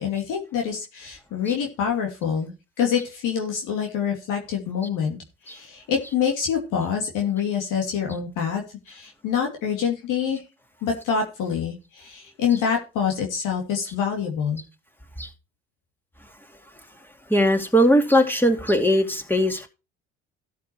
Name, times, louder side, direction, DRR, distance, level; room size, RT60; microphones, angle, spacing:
voice 1, 0.0-2.5 2.8-5.2 5.4-10.4 10.8-14.6, left 7 dB, 70° left, 2.7 m, -26 dB
voice 2, 17.3-19.7, equal, 5° left, 2.5 m, -19 dB
13.0 x 5.9 x 4.6 m
hypercardioid pair, 60°, 32 cm